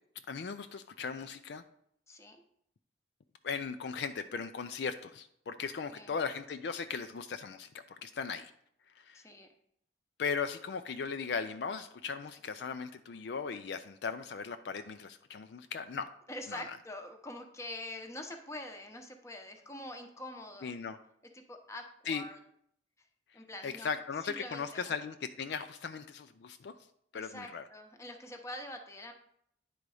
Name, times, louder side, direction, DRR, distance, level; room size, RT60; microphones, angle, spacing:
voice 1, 0.3-1.6 3.4-7.7 8.0-8.5 9.0-9.2 10.2-16.1 16.5-16.6 20.6-21.0 22.1-22.2 23.6-26.7 27.1-27.6, left 5 dB, 65° left, 9 dB, 0.4 m, -37 dB
voice 2, 2.1-2.4 5.9-6.1 9.1-9.5 16.3-20.7 21.3-22.4 23.3-23.9 24.2-24.9 27.1-29.1, left 1 dB, 15° left, 4 dB, 0.8 m, -45 dB
9.8 x 3.9 x 4.8 m, 0.70 s
head